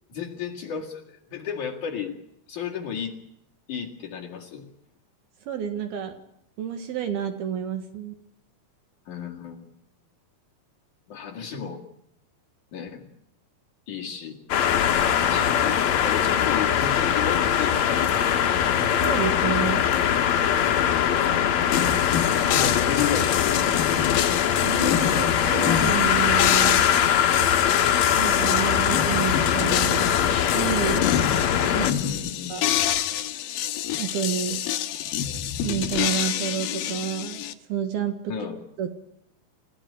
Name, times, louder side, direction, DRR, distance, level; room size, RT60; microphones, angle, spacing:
voice 1, 0.1-2.2 2.5-3.2 3.7-4.6 9.1-9.7 11.1-11.8 12.7-13.1 13.9-14.4 15.2-18.1 18.5-18.7 22.5-23.9 31.7-32.5 38.3-38.6, left 7 dB, 50° left, 0 dB, 2.9 m, -33 dB
voice 2, 5.4-6.2 6.6-8.2 19.0-19.9 24.6-26.9 28.1-31.1 31.7-31.9 32.5-32.7 34.0-34.6 35.6-38.9, right 9 dB, 65° right, 8 dB, 3.2 m, -30 dB
sound 1, 14.5-31.9, left 9 dB, 90° left, 1.5 m, -22 dB
sound 2, 21.7-37.5, left 10 dB, 70° left, 2.5 m, -28 dB
28.5 x 16.0 x 10.0 m, 0.76 s
omnidirectional pair, 5.4 m